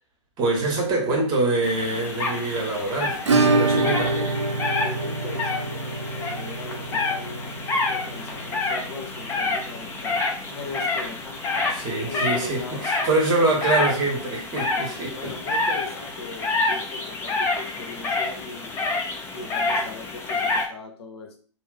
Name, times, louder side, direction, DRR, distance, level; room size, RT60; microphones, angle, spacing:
voice 1, 0.4-4.1 11.7-15.3, right 2 dB, 25° right, 0 dB, 1.0 m, -25 dB
sound 1, 1.6-20.6, left 3 dB, 15° left, 0.5 m, -28 dB
Acoustic guitar / Strum, 3.3-11.9 12.1-12.2 12.5-12.6 13.0-13.1 15.1-15.2 16.3-16.4, right 3 dB, 70° right, 0.6 m, -27 dB
voice 2, 4.0-4.4 4.8-11.7 12.0-13.3 15.1-18.8 19.3-21.4, left 3 dB, 55° left, 3 dB, 0.8 m, -39 dB
2.6 x 2.0 x 3.8 m, 0.43 s
figure-of-eight pair, 115°, 16 cm